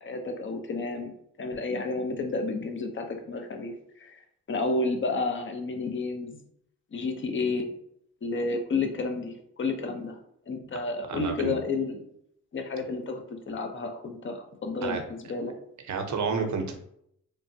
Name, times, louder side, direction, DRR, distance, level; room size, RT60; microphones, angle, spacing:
voice 1, 0.0-4.2 4.5-6.4 6.9-7.7 8.2-10.2 10.5-12.0 12.5-15.5, left 3 dB, 35° left, 5 dB, 0.6 m, -31 dB
voice 2, 11.1-11.5 14.8-15.0 15.8-16.7, right 5 dB, 55° right, 5 dB, 0.6 m, -30 dB
3.2 x 2.1 x 2.6 m, 0.72 s
supercardioid pair, 60°, 34 cm